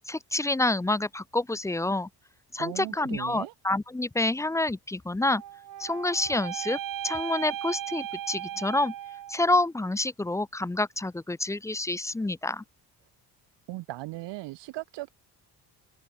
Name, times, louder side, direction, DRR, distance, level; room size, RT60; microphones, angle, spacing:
voice 1, 0.1-2.1 2.5-5.4 5.8-6.8 7.0-8.9 9.3-12.6, left 2 dB, 5° left, 0.6 m, -28 dB
voice 2, 2.6-3.5 13.7-15.1, right 18 dB, 85° right, 1.3 m, -38 dB
sound 1, 5.3-9.6, right 12 dB, 50° right, 1.4 m, -37 dB
cardioid pair, 130°, 42 cm